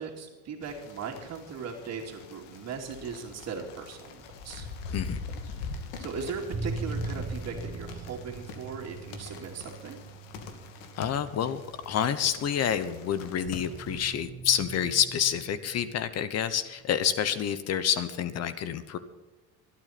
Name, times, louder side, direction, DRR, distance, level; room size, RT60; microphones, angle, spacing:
voice 1, 0.0-4.7 5.9-10.0, right 5 dB, 45° right, -4 dB, 2.6 m, -38 dB
sound 1, 0.6-14.0, left 4 dB, 85° left, 2.5 m, -43 dB
sound 2, 5.0-13.0 13.5-16.1 16.9-17.2, right 3 dB, 20° right, 1.9 m, -41 dB
voice 2, 11.0-11.6 11.9-19.0, left 9 dB, 45° left, 12 dB, 1.0 m, -28 dB
25.5 x 9.3 x 4.3 m, 1.2 s
cardioid pair, 135°, 37 cm